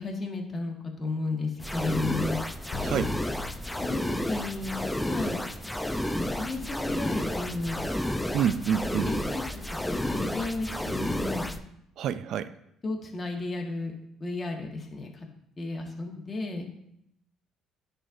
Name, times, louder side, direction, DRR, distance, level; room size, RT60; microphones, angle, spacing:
voice 1, 0.0-2.4 3.8-4.8 5.0-5.4 6.1-7.8 9.0-9.6 9.9-11.5 12.8-13.9 14.2-15.3 15.6-16.7, left 3 dB, 30° left, 1 dB, 1.6 m, -33 dB
sound 1, 1.6-11.6, left 1 dB, 5° left, 0.5 m, -31 dB
sound 2, 2.7-5.3, left 5 dB, 55° left, 1.8 m, -42 dB
voice 2, 2.8-3.2 8.3-9.1 12.0-12.5, right 8 dB, 65° right, 15 dB, 0.4 m, -28 dB
9.9 x 5.0 x 2.6 m, 0.78 s
supercardioid pair, 70°, 0 cm